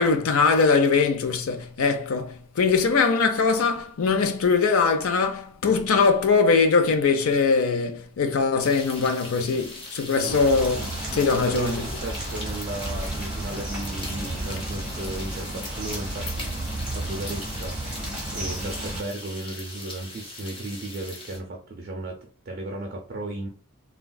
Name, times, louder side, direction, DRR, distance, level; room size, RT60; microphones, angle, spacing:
voice 1, 0.0-11.9, left 4 dB, 75° left, 0.5 m, -22 dB
sound 1, 8.6-21.4, left 2 dB, 25° left, 0.6 m, -40 dB
sound 2, 10.3-19.0, right 1 dB, 5° right, 0.9 m, -32 dB
voice 2, 11.1-16.5 16.9-18.0 18.3-23.5, right 1 dB, 45° right, 0.4 m, -35 dB
3.4 x 2.2 x 2.2 m
head